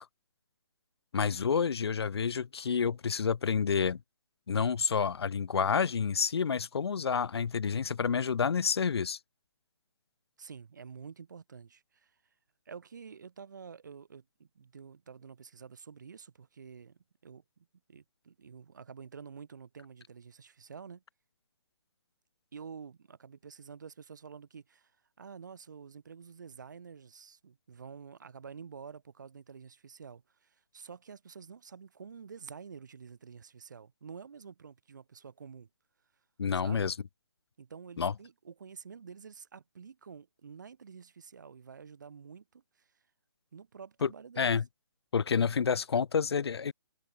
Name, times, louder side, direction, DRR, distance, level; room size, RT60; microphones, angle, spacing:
voice 1, 1.1-4.0 4.5-9.2 36.4-36.9 38.0-38.1 44.0-44.1 44.4-44.6 45.1-46.7, left 6 dB, 75° left, 0.6 m, -29 dB
voice 2, 10.4-12.2 12.7-21.0 22.5-35.7 36.5-36.9 37.6-42.9 43.5-44.6, right 6 dB, 45° right, 1.1 m, -49 dB
hypercardioid pair, 180°, 13 cm